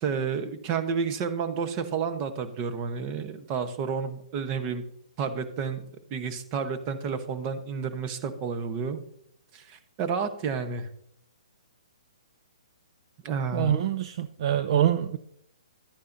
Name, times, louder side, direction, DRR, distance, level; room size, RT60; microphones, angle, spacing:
voice 1, 0.0-4.8 5.2-9.0 9.5-10.9 13.2-13.8, right 5 dB, 30° right, 9 dB, 1.0 m, -30 dB
voice 2, 13.5-15.2, right 10 dB, 50° right, 12 dB, 0.5 m, -25 dB
11.5 x 9.2 x 2.7 m, 0.72 s
hypercardioid pair, 145°, 4 cm